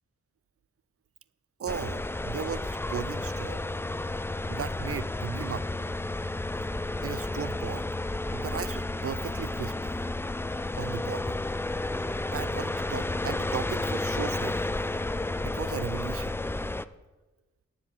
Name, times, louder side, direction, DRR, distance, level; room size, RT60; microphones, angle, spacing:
voice 1, 1.6-3.7 4.5-5.7 7.0-7.8 8.3-9.9 10.7-11.4 12.3-14.7 15.4-16.4, right 8 dB, 50° right, 18 dB, 0.4 m, -36 dB
sound 1, 1.7-16.9, left 2 dB, 10° left, 0.4 m, -32 dB
10.5 x 7.4 x 6.5 m, 1.2 s
cardioid pair, 45°, 30 cm